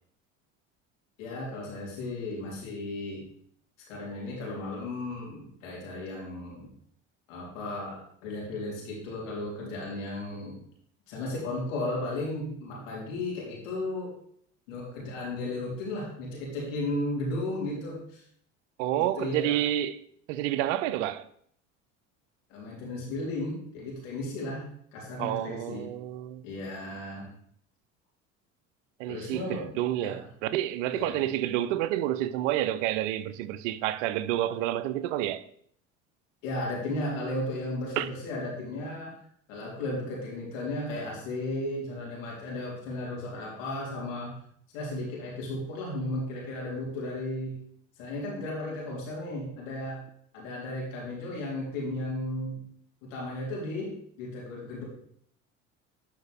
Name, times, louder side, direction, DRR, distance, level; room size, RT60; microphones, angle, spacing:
voice 1, 1.2-3.3 3.9-6.7 7.3-10.6 11.1-14.1 14.7-18.2 18.9-19.6 22.5-25.8 26.4-27.3 29.1-29.6 30.0-30.3 30.9-31.2 36.4-39.1 39.5-44.3 44.7-47.6 48.0-50.0 50.3-52.6 53.0-54.8, left 1 dB, 80° left, 3.5 m, -35 dB
voice 2, 18.8-20.0 20.3-21.3 25.2-26.4 29.0-35.4 38.0-38.1, right 13 dB, 75° right, 0.6 m, -29 dB
12.0 x 5.0 x 3.5 m
hypercardioid pair, 70°, 38 cm